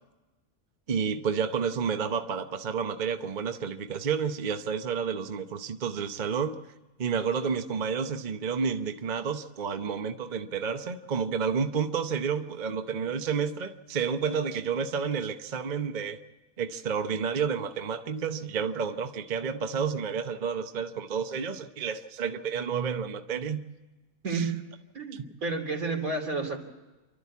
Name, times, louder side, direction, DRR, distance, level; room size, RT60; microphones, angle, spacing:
voice 1, 0.9-6.6 7.0-16.2 16.6-23.6 24.3-24.5 25.1-25.2, right 6 dB, 40° right, 7 dB, 0.9 m, -30 dB
voice 2, 24.9-26.6, right 3 dB, 80° right, 2 dB, 3.5 m, -30 dB
28.5 x 12.5 x 8.3 m, 1.1 s
omnidirectional pair, 1.5 m